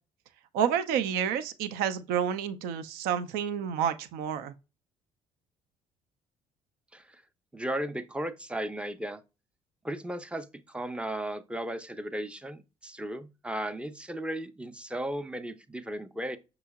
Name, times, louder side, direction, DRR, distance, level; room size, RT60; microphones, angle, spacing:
voice 1, 0.5-4.5, right 8 dB, 65° right, 0.5 m, -29 dB
voice 2, 7.5-9.2 9.8-16.4, right 1 dB, 5° right, 0.5 m, -35 dB
6.1 x 2.9 x 2.3 m
hypercardioid pair, 50°, 17 cm